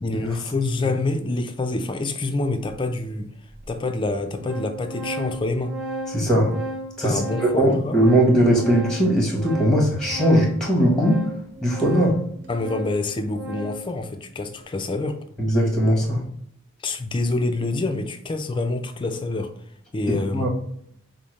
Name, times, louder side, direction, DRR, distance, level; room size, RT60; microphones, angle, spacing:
voice 1, 0.0-3.3 3.7-5.8 7.0-8.0 12.5-15.2 16.8-19.5 19.9-20.5, left 2 dB, 25° left, 0.4 m, -26 dB
Organ, 2.7-2.8 3.6-3.7 4.0-13.9, right 1 dB, 55° right, 0.7 m, -35 dB
voice 2, 6.1-6.5 7.0-11.2 11.6-12.1 15.4-16.2 20.3-20.5, equal, 5° left, 1.0 m, -19 dB
5.4 x 2.0 x 3.1 m
head